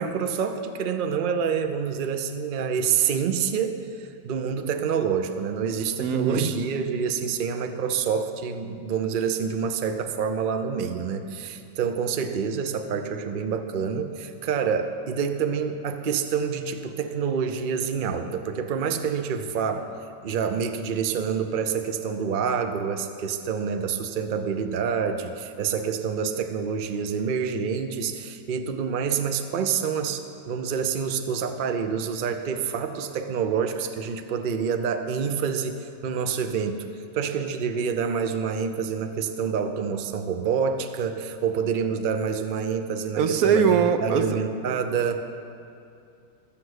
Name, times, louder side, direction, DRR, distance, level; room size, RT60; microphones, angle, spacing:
voice 1, 0.0-19.9 20.2-36.9 37.1-45.2, right 6 dB, 85° right, 7 dB, 0.4 m, -27 dB
voice 2, 6.0-6.5 43.2-44.4, right 7 dB, 65° right, 8 dB, 1.0 m, -21 dB
13.5 x 7.1 x 8.0 m, 2.6 s
omnidirectional pair, 1.9 m